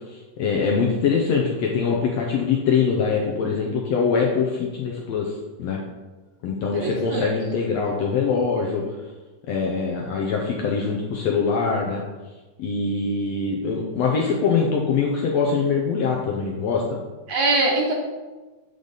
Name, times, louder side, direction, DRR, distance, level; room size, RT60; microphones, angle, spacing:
voice 1, 0.1-5.8 6.4-9.0 9.5-12.0 12.6-17.0, left 5 dB, 75° left, -1 dB, 1.6 m, -23 dB
voice 2, 6.7-7.3 17.3-17.9, right 2 dB, 70° right, 0 dB, 1.8 m, -22 dB
7.9 x 5.2 x 3.9 m, 1.2 s
omnidirectional pair, 3.7 m